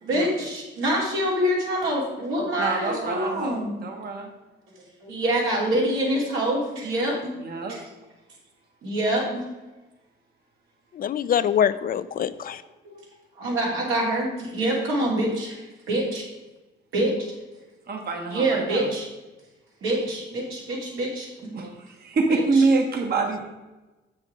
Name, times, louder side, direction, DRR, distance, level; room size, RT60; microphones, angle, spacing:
voice 1, 0.0-3.7 5.0-7.3 7.7-7.8 8.8-9.4 12.8-12.9 13.4-15.5 15.9-16.2 16.9-17.3 17.9-18.0 18.3-19.1 19.8-21.3 21.6-21.7 22.3-22.4, right 1 dB, 85° right, -3 dB, 2.9 m, -25 dB
voice 2, 2.6-4.3 7.4-7.8 17.9-18.9 21.5-23.4, right 3 dB, 50° right, 3 dB, 1.2 m, -26 dB
voice 3, 11.0-12.6, left 9 dB, 45° left, 14 dB, 0.4 m, -24 dB
7.5 x 6.2 x 4.9 m, 1.1 s
cardioid pair, 90°, 20 cm